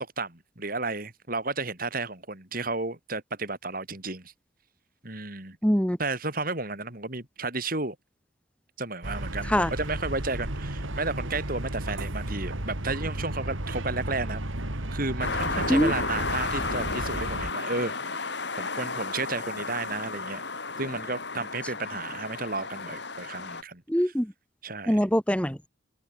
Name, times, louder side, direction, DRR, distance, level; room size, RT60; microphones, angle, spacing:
voice 1, 0.2-4.3 5.0-5.6 6.0-8.0 8.8-14.4 14.7-18.3 18.6-20.4 20.8-23.8 24.6-25.0, right 3 dB, 45° right, 5.0 m, -32 dB
voice 2, 5.6-6.0 9.5-9.7 15.7-15.9 23.9-24.3 24.9-25.7, equal, 5° left, 2.4 m, -23 dB
sound 1, 9.0-17.5, right 1 dB, 85° right, 3.1 m, -34 dB
sound 2, 15.2-23.6, left 3 dB, 60° left, 4.1 m, -33 dB
head